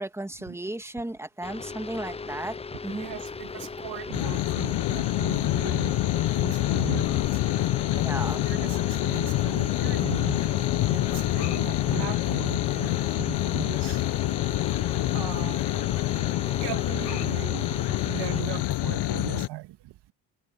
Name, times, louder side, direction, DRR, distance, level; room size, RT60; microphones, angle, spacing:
voice 1, 0.0-2.6 2.8-3.1 8.0-8.7, right 1 dB, 5° right, 2.5 m, -35 dB
sound 1, 1.4-18.4, left 4 dB, 10° left, 0.7 m, -38 dB
voice 2, 2.9-7.2 7.9-10.4 10.9-14.0 15.1-15.6 16.6-19.9, right 15 dB, 55° right, 2.0 m, -38 dB
sound 2, 4.1-19.5, left 16 dB, 50° left, 1.5 m, -26 dB
figure-of-eight pair, 55°, 50 cm